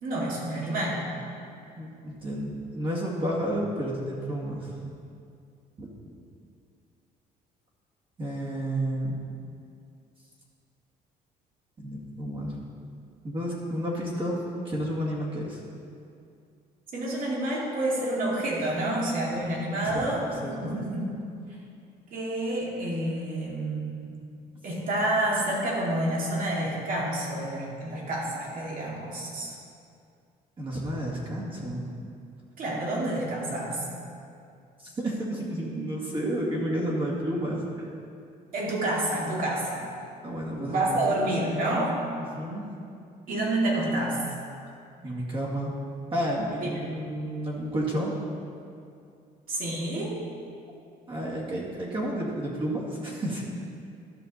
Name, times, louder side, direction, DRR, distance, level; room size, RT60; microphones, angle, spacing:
voice 1, 0.0-1.1 16.9-21.1 22.1-24.0 24.6-29.6 32.6-33.8 38.5-39.9 40.7-42.0 43.3-44.2 46.6-46.7 49.5-50.2, right 1 dB, 55° right, -4 dB, 2.4 m, -28 dB
voice 2, 1.8-4.7 5.8-5.9 8.2-9.2 11.8-12.5 13.2-15.6 19.4-20.0 20.4-20.8 30.6-31.9 34.8-37.6 40.2-41.2 42.4-42.7 45.0-45.7 46.1-48.2 51.1-53.4, right 1 dB, 30° right, -5 dB, 2.2 m, -31 dB
12.5 x 5.9 x 4.1 m, 2.4 s
cardioid pair, 110°, 17 cm